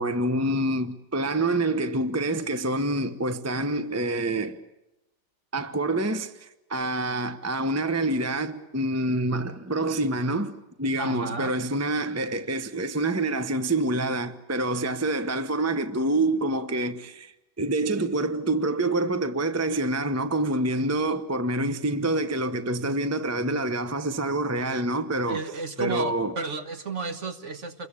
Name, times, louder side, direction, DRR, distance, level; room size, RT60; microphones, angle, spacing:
voice 1, 0.0-4.6 5.5-25.4 25.8-26.4, right 2 dB, 15° right, 0.6 m, -27 dB
voice 2, 11.0-11.5 25.3-27.9, right 4 dB, 40° right, 1.5 m, -33 dB
29.0 x 22.0 x 8.5 m
omnidirectional pair, 2.2 m